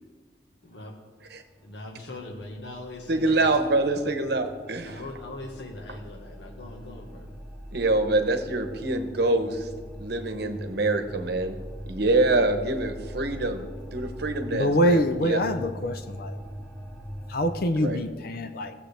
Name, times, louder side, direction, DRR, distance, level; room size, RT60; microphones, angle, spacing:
voice 1, 0.6-0.9 1.6-3.6 4.8-7.3, left 2 dB, 75° left, 1 dB, 1.6 m, -40 dB
sound 1, 1.3-17.6, equal, 5° left, 0.9 m, -42 dB
voice 2, 3.1-5.0 7.7-9.7 10.0-11.6 11.9-13.7 13.9-15.4 17.8-18.0, right 2 dB, 65° right, 7 dB, 1.0 m, -25 dB
voice 3, 14.5-16.4 17.3-18.7, equal, 60° left, 8 dB, 0.6 m, -25 dB
17.5 x 7.5 x 3.4 m, 1.4 s
head